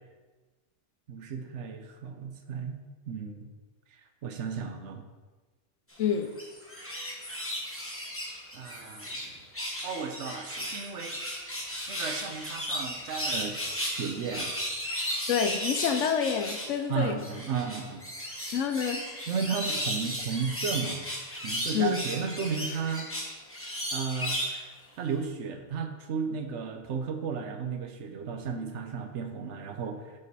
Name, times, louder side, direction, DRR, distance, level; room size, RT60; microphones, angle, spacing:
voice 1, 1.1-2.8 3.1-3.5 4.2-5.0 8.5-9.3 9.8-11.2 11.9-13.6 13.8-14.5 16.9-18.0 19.3-21.0 21.4-23.1 23.9-24.4 25.0-30.1, right 6 dB, 75° right, 6 dB, 1.0 m, -34 dB
voice 2, 6.0-6.3 15.3-17.2 18.5-19.0 21.7-22.0, left 7 dB, 80° left, 7 dB, 1.0 m, -27 dB
sound 1, 6.2-9.3 9.5-16.7 17.2-24.6 25.1-25.2, equal, 10° left, 0.9 m, -35 dB
6.7 x 5.0 x 4.1 m, 1.3 s
omnidirectional pair, 1.3 m